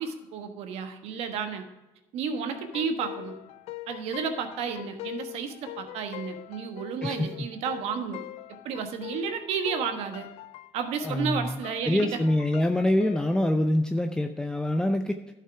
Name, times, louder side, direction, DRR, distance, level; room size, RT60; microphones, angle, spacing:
voice 1, 0.0-1.6 2.1-3.3 3.9-8.2 8.6-10.3 10.7-12.2, right 6 dB, 75° right, 7 dB, 1.3 m, -32 dB
sound 1, 2.5-13.5, left 17 dB, 70° left, 0.4 m, -42 dB
voice 2, 7.0-7.5 11.0-11.6 11.9-15.2, left 1 dB, 5° left, 7 dB, 0.6 m, -25 dB
11.5 x 5.8 x 4.8 m, 1.1 s
supercardioid pair, 90°, 11 cm